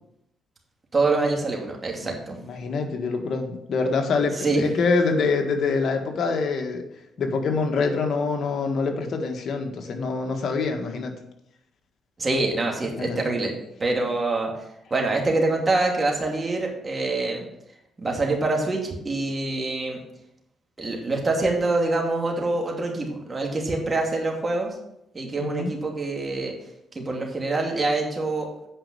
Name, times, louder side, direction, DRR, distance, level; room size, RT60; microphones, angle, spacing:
voice 1, 0.9-2.4 4.3-4.6 12.2-13.5 13.8-14.5 14.9-17.4 18.0-20.0 20.8-24.8 25.1-26.5 26.9-28.5, right 2 dB, 30° right, 0 dB, 2.6 m, -25 dB
voice 2, 2.4-6.8 7.2-11.1 13.0-13.2 25.4-25.7, left 4 dB, 60° left, 3 dB, 1.7 m, -25 dB
8.8 x 5.4 x 6.2 m, 0.81 s
cardioid pair, 90°, 0 cm